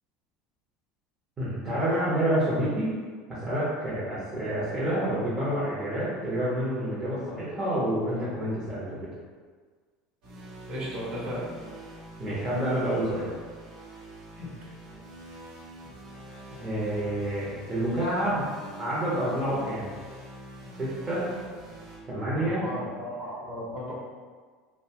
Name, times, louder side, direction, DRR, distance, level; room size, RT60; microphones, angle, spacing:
voice 1, 1.4-2.9 3.3-9.0 12.2-13.3 16.6-18.5 18.8-20.0 20.8-21.3 22.1-22.6, right 1 dB, 25° right, -10 dB, 0.7 m, -28 dB
sound 1, 10.2-22.0, right 1 dB, 65° right, 0.9 m, -45 dB
voice 2, 10.7-11.5 14.4-14.5 22.4-23.9, equal, 40° right, -6 dB, 1.1 m, -35 dB
2.7 x 2.2 x 2.7 m, 1.5 s
supercardioid pair, 120°, 2 cm